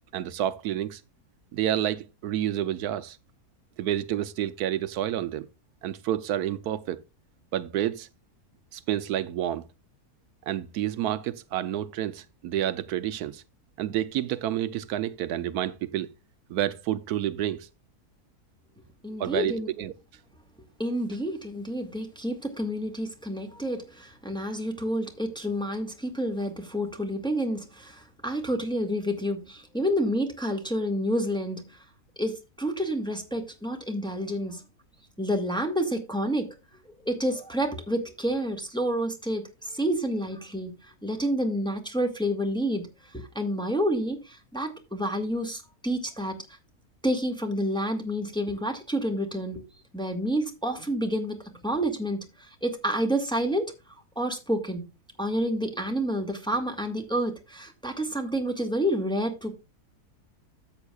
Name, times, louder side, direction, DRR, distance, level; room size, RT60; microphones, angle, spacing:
voice 1, 0.1-1.0 1.5-3.2 3.8-5.5 5.8-7.0 7.5-8.1 8.7-9.7 10.5-13.4 13.8-16.1 16.5-17.7 19.2-19.9, right 11 dB, 80° right, 1.1 m, -29 dB
voice 2, 19.0-19.7 20.8-31.7 32.2-34.6 35.2-36.5 36.8-42.9 43.1-46.3 47.0-49.6 49.9-51.4 51.6-53.7 54.1-54.9 55.2-59.6, equal, 5° left, 1.5 m, -29 dB
13.0 x 8.0 x 2.3 m
omnidirectional pair, 1.6 m